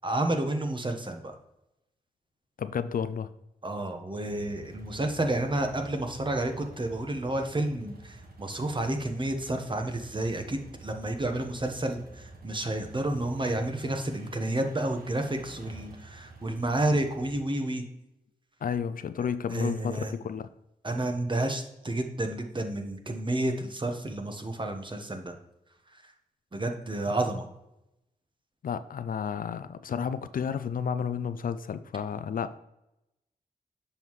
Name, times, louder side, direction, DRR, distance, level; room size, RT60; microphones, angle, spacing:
voice 1, 0.0-1.3 3.6-17.8 19.5-20.1 20.8-25.3 26.5-27.4, right 1 dB, 30° right, 5 dB, 1.2 m, -30 dB
voice 2, 2.6-3.3 18.6-20.5 28.6-32.6, left 7 dB, 60° left, 13 dB, 0.4 m, -32 dB
sound 1, 4.3-17.4, right 2 dB, 70° right, 1.3 m, -48 dB
6.9 x 5.5 x 3.1 m, 0.89 s
cardioid pair, 45°, 16 cm